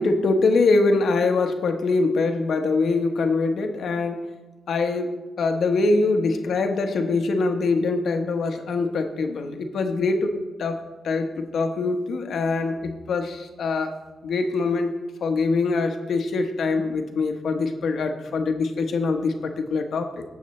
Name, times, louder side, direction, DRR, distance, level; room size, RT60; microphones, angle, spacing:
voice 1, 0.0-4.2 4.7-13.9 14.2-14.9 15.2-20.2, left 3 dB, 75° left, 5 dB, 1.1 m, -23 dB
18.0 x 6.9 x 3.2 m, 1.1 s
cardioid pair, 105°, 0 cm